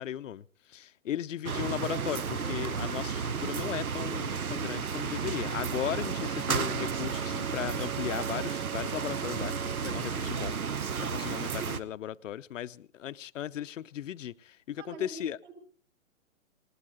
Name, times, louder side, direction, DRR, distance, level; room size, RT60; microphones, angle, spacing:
voice 1, 0.0-15.4, left 11 dB, 65° left, 0.7 m, -37 dB
sound 1, 1.4-11.8, right 6 dB, 90° right, 1.2 m, -33 dB
Bowed string instrument, 5.6-10.1, right 11 dB, 40° right, 4.1 m, -44 dB
voice 2, 14.8-15.5, right 2 dB, 55° right, 6.1 m, -45 dB
20.0 x 18.5 x 3.8 m
hypercardioid pair, 145°, 42 cm